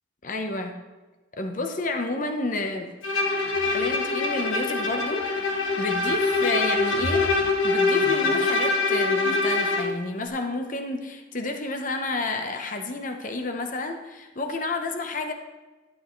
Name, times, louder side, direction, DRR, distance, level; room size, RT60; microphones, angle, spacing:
voice 1, 0.2-0.7 1.4-2.9 3.7-7.3 7.6-15.3, left 2 dB, 40° left, 5 dB, 0.9 m, -30 dB
Bowed string instrument, 3.0-10.0, left 3 dB, 90° left, 1.4 m, -24 dB
12.0 x 11.0 x 3.2 m, 1.2 s
head